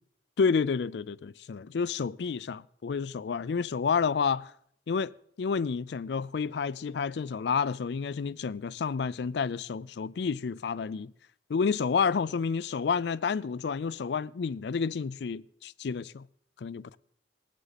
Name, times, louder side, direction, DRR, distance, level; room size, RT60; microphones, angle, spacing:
voice 1, 0.4-4.5 4.9-11.1 11.5-16.3 16.6-17.0, left 5 dB, 70° left, 0.4 m, -30 dB
20.5 x 8.1 x 4.1 m
head